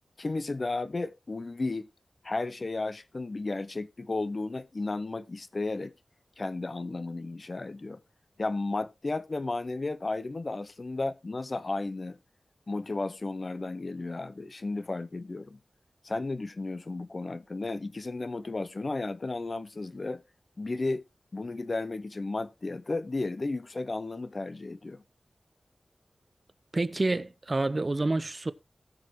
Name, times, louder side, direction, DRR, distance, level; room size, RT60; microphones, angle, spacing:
voice 1, 0.2-1.9 2.2-5.9 6.4-8.0 8.4-12.2 12.7-15.6 16.0-20.2 20.6-21.0 21.3-25.0, left 3 dB, 40° left, 0.6 m, -33 dB
voice 2, 26.7-28.5, right 2 dB, 35° right, 0.6 m, -28 dB
18.5 x 6.4 x 3.1 m
wide cardioid pair, 100°, 0 cm